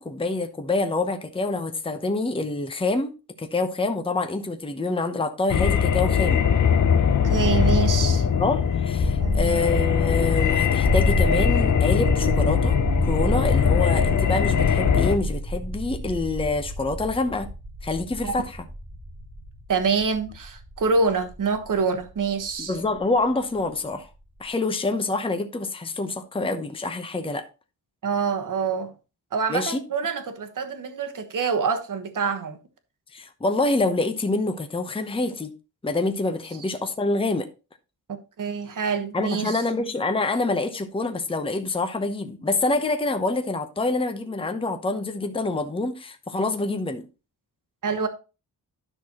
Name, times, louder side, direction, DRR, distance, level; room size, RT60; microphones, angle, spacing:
voice 1, 0.0-3.1 3.4-6.4 8.3-12.8 13.0-17.5 17.8-18.7 22.6-24.1 24.4-27.4 29.5-29.8 33.1-35.5 35.8-37.5 39.1-47.1, left 2 dB, 15° left, 0.8 m, -26 dB
sound 1, 5.5-15.2, left 7 dB, 50° left, 0.7 m, -21 dB
voice 2, 7.2-8.2 9.2-9.6 18.2-18.3 19.7-22.8 28.0-28.9 29.3-32.6 38.1-39.6 47.8-48.1, right 5 dB, 55° right, 1.3 m, -26 dB
sound 2, 7.3-23.2, equal, 20° right, 1.8 m, -30 dB
11.0 x 6.1 x 2.9 m
wide cardioid pair, 105°, 38 cm